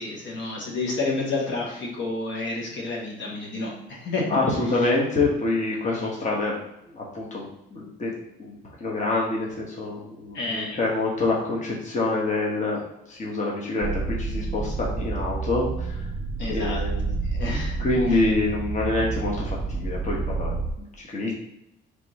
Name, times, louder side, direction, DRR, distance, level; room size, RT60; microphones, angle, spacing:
voice 1, 0.0-4.2 10.3-10.7 16.4-16.8 17.2-17.7 18.1-18.2, left 3 dB, 70° left, -3 dB, 1.3 m, -30 dB
voice 2, 4.3-6.6 6.9-8.1 8.4-12.8 13.1-16.1 16.5-17.1 17.8-21.3, left 2 dB, 35° left, -3 dB, 1.1 m, -26 dB
sound 1, 13.8-20.7, right 4 dB, 20° right, 0.4 m, -29 dB
3.5 x 3.0 x 4.0 m, 0.85 s
cardioid pair, 90°, 20 cm